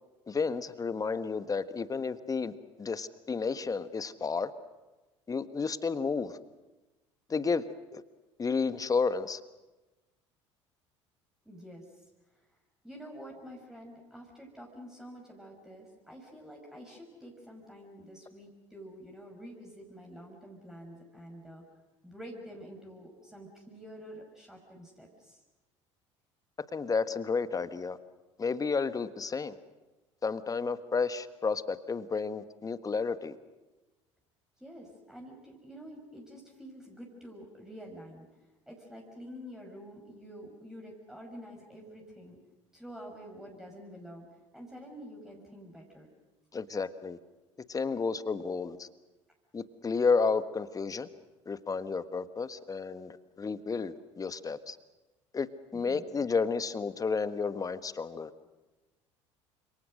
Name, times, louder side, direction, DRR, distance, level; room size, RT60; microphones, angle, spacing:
voice 1, 0.3-4.5 5.3-6.3 7.3-7.6 7.9-8.0 8.4-9.4 26.7-28.0 28.4-29.6 30.2-33.3 46.5-47.2 47.7-48.9 49.5-51.1 51.5-54.8 55.3-55.5 55.7-58.3, left 4 dB, 20° left, 13 dB, 1.4 m, -31 dB
voice 2, 11.4-12.1 12.3-12.4 12.8-21.6 22.0-25.4 34.6-38.3 38.7-42.4 42.7-44.3 44.5-46.1 55.7-56.0, equal, 5° right, -1 dB, 6.1 m, -48 dB
29.5 x 26.5 x 6.5 m, 1.1 s
figure-of-eight pair, 65°, 16 cm